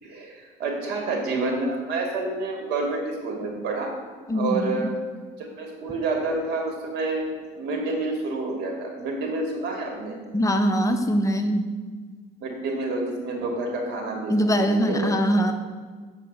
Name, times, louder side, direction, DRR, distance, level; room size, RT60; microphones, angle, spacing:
voice 1, 0.0-4.0 4.3-4.9 5.6-7.2 7.5-10.2 12.4-15.1, right 3 dB, 85° right, 1 dB, 2.5 m, -28 dB
voice 2, 4.3-4.9 10.3-11.6 14.3-15.5, equal, 20° left, 5 dB, 0.9 m, -22 dB
8.3 x 4.9 x 6.8 m, 1.4 s
cardioid pair, 110°, 17 cm